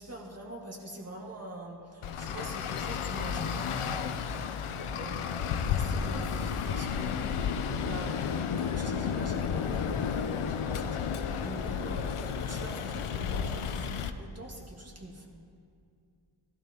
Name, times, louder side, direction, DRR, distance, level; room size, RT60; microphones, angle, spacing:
voice 1, 0.0-4.3 5.0-7.2 7.8-15.3, right 1 dB, 30° right, -1 dB, 1.7 m, -44 dB
Traffic noise roadway noise, 2.0-14.1, left 7 dB, 80° left, 0.7 m, -32 dB
15.5 x 12.5 x 2.9 m, 2.4 s
wide cardioid pair, 80°, 50 cm